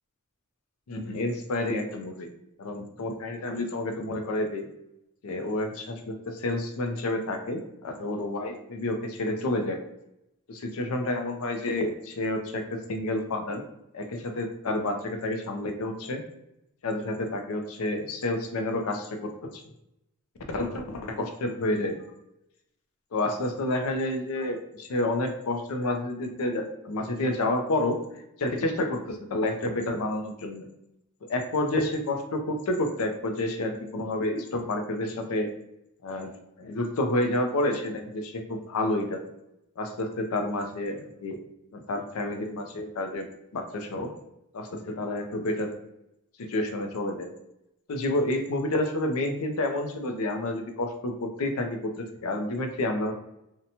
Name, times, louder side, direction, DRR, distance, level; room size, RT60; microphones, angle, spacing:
voice 1, 0.9-2.3 2.6-4.7 5.2-9.8 10.5-13.6 13.9-16.2 16.8-19.6 20.5-22.0 23.1-28.0 28.4-30.6 31.3-35.5 36.0-36.3 36.6-39.2 39.8-41.4 41.7-43.3 43.5-44.1 44.5-45.8 46.4-47.3 47.9-53.1, left 1 dB, 70° left, 5 dB, 0.4 m, -29 dB
2.7 x 2.1 x 2.7 m, 0.83 s
head